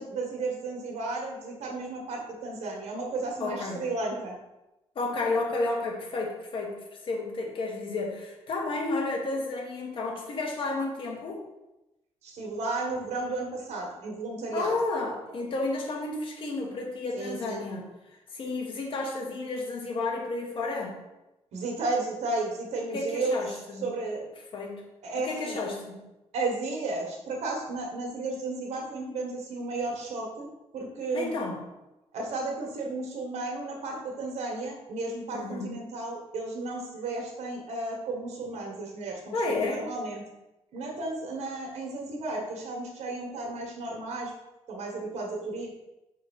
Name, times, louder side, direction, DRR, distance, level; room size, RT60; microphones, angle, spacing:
voice 1, 0.0-4.3 12.2-14.7 17.1-17.6 21.5-24.2 25.0-25.6 26.3-31.4 32.1-39.3 39.7-40.2 40.7-44.3 44.7-45.7, right 2 dB, 75° right, 0 dB, 1.7 m, -33 dB
voice 2, 3.4-3.8 4.9-11.4 14.5-17.9 18.3-21.0 22.9-23.9 24.5-24.8 25.2-26.1 31.1-31.6 35.3-35.7 39.3-39.8, left 3 dB, 50° left, 1 dB, 1.3 m, -31 dB
5.6 x 4.0 x 5.5 m, 0.97 s
cardioid pair, 160°, 11 cm